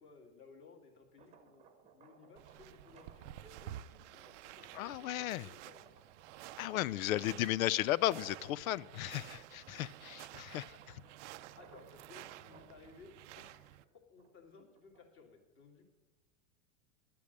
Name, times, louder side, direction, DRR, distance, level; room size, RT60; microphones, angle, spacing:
voice 1, 0.0-1.7 1.9-5.9 10.0-15.9, left 4 dB, 30° left, 3 dB, 2.3 m, -60 dB
sound 1, 1.0-7.6 8.1-15.3, right 6 dB, 15° right, 1.0 m, -63 dB
sound 2, 2.4-13.8, right 14 dB, 60° right, 0.5 m, -52 dB
voice 2, 4.7-5.5 6.6-10.6, left 14 dB, 90° left, 23 dB, 0.5 m, -34 dB
11.5 x 8.4 x 6.6 m, 1.2 s
supercardioid pair, 155°, 41 cm